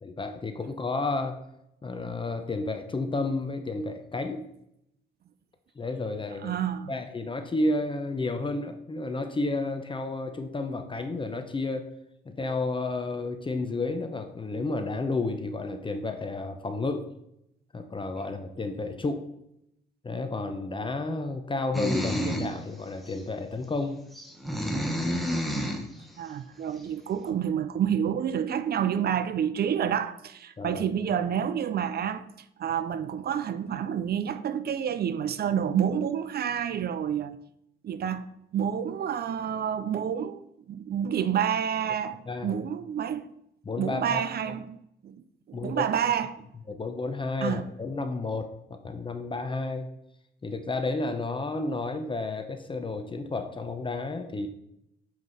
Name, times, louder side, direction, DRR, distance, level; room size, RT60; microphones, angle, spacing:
voice 1, 0.0-1.4 1.8-4.5 5.8-6.6 6.9-11.9 12.3-17.1 17.7-19.3 20.0-24.0 30.6-30.8 42.3-42.5 43.6-44.2 45.5-45.8 46.7-49.9 50.4-54.5, left 3 dB, 25° left, 0.7 m, -31 dB
voice 2, 6.4-6.9 26.2-32.2 32.6-37.4 37.8-43.3 43.8-44.8 45.0-46.5 47.4-47.6, right 8 dB, 50° right, 0.6 m, -29 dB
sound 1, 21.7-22.5 23.1-23.2 24.1-25.9, equal, ahead, 1.2 m, -29 dB
7.4 x 4.8 x 4.0 m
cardioid pair, 90°, 20 cm